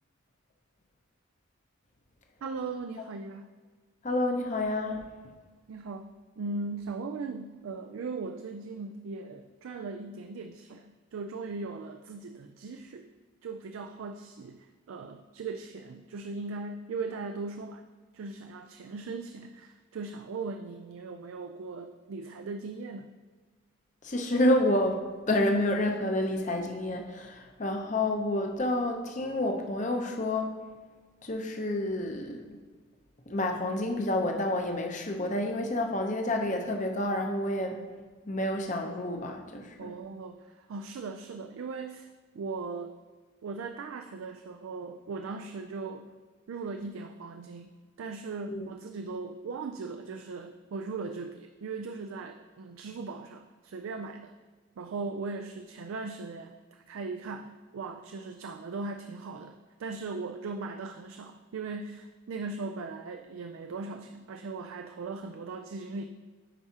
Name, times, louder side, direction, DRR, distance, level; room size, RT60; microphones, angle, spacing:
voice 1, 2.4-3.5 5.7-6.1 6.4-13.1 13.4-17.8 18.1-23.1 39.8-42.1 42.3-43.0 43.4-46.1 46.5-47.7 48.0-54.3 54.8-66.0, right 4 dB, 75° right, 6 dB, 0.4 m, -39 dB
voice 2, 4.0-5.0 24.0-30.5 31.2-32.6 33.3-37.8 38.3-39.9 48.5-48.7, left 1 dB, 35° left, 3 dB, 0.7 m, -29 dB
10.0 x 4.8 x 2.8 m, 1.4 s
head